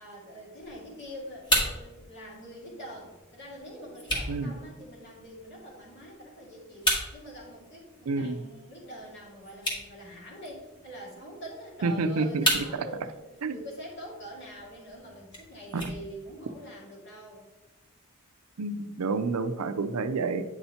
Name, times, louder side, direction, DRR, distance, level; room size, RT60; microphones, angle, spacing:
voice 1, 0.0-17.5, equal, 55° left, -4 dB, 2.3 m, -44 dB
sound 1, 0.6-16.6, equal, 20° left, 1.5 m, -36 dB
voice 2, 8.1-8.4 11.8-12.8 13.4-13.6 15.7-15.9 18.6-20.4, right 3 dB, 80° right, 10 dB, 0.5 m, -29 dB
8.6 x 5.6 x 2.9 m, 1.1 s
head